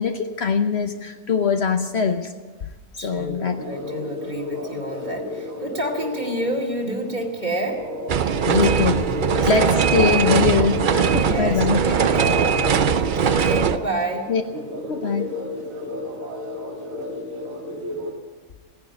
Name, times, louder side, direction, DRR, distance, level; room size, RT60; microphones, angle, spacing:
voice 1, 0.0-2.3 3.0-3.6 8.4-9.1 9.4-11.8 13.3-13.5 14.3-14.4 14.9-15.3, left 6 dB, 60° left, 6 dB, 1.0 m, -22 dB
voice 2, 3.0-7.9 8.5-8.9 9.3-10.1 11.2-14.3, right 1 dB, 35° right, 0 dB, 2.4 m, -30 dB
sound 1, 3.6-18.1, left 2 dB, 90° right, 2.4 m, -32 dB
sound 2, 8.1-13.8, right 7 dB, 50° right, 0.6 m, -20 dB
17.0 x 10.5 x 8.1 m, 1.3 s
omnidirectional pair, 1.4 m